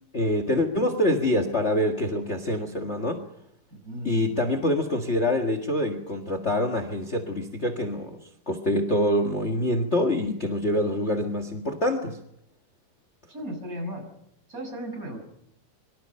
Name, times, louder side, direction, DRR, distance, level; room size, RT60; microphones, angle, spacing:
voice 1, 0.1-3.3 4.0-8.2 8.5-12.2, left 1 dB, 40° left, 8 dB, 0.9 m, -25 dB
voice 2, 3.7-4.6 13.3-14.1 14.5-15.2, equal, 20° right, 5 dB, 6.7 m, -36 dB
26.5 x 24.0 x 5.6 m, 0.78 s
omnidirectional pair, 4.2 m